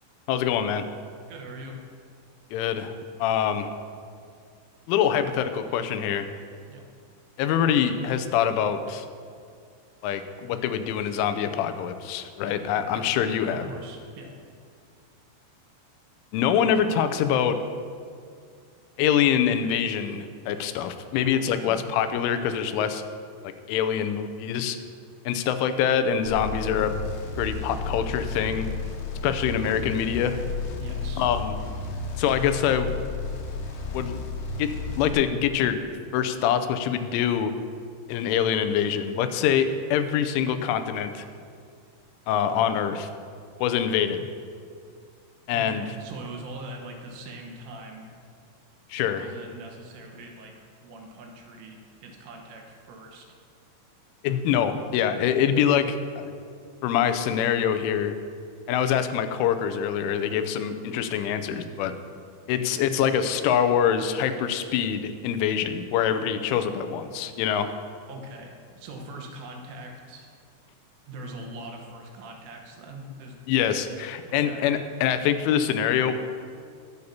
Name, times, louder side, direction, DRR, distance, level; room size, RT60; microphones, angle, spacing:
voice 1, 0.3-0.8 2.5-2.9 3.2-3.7 4.9-6.3 7.4-9.1 10.0-13.7 16.3-17.6 19.0-23.0 23.4-24.8 25.3-26.9 27.4-28.7 29.2-30.4 31.2-31.5 32.2-32.9 33.9-34.2 34.6-35.8 36.1-37.5 38.1-41.3 42.3-43.1 43.6-44.2 45.5-45.8 48.9-49.3 54.2-56.4 56.8-58.2 58.7-61.9 62.5-67.7 73.5-76.2, left 8 dB, 85° left, 9 dB, 3.1 m, -25 dB
voice 2, 1.3-1.8 6.7-6.8 12.4-12.6 12.9-13.1 13.5-14.3 21.2-21.9 30.8-31.3 45.5-48.1 49.0-53.3 68.0-70.3 71.1-73.4 74.3-74.7, right 1 dB, 85° right, 1 dB, 3.7 m, -41 dB
sound 1, 26.3-35.1, left 4 dB, 70° left, 2.9 m, -33 dB
21.5 x 8.1 x 2.8 m, 2.2 s
omnidirectional pair, 5.5 m